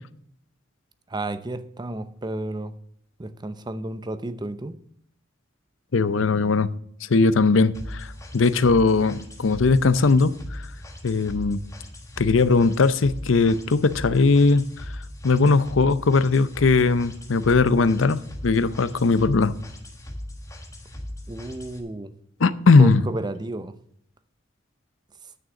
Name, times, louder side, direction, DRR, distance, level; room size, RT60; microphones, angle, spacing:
voice 1, 1.1-2.7 3.2-4.8 21.3-22.1 22.8-23.7, right 2 dB, 20° right, 0.6 m, -32 dB
voice 2, 5.9-6.7 7.1-8.1 8.3-10.6 11.0-11.6 12.2-14.6 15.2-19.5 22.4-23.0, left 4 dB, 80° left, 0.6 m, -19 dB
sound 1, 7.7-21.8, left 1 dB, 15° left, 1.6 m, -38 dB
9.4 x 6.4 x 7.1 m
head